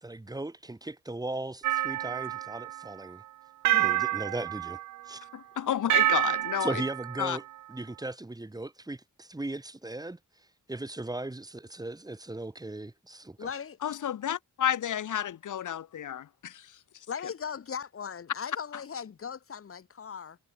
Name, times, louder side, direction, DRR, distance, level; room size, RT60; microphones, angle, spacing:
voice 1, 0.0-3.2 3.7-4.8 5.1-5.2 6.6-7.4 7.7-10.2 10.7-13.5, right 2 dB, 10° right, 3.7 m, -37 dB
sound 1, 1.6-2.9 3.6-5.2 5.9-7.4, right 14 dB, 70° right, 0.5 m, -28 dB
voice 2, 5.3-6.8 7.2-7.4 13.8-16.8, left 10 dB, 75° left, 2.7 m, -31 dB
voice 3, 13.4-13.8 17.1-20.4, left 7 dB, 45° left, 2.7 m, -38 dB
wide cardioid pair, 145°, 31 cm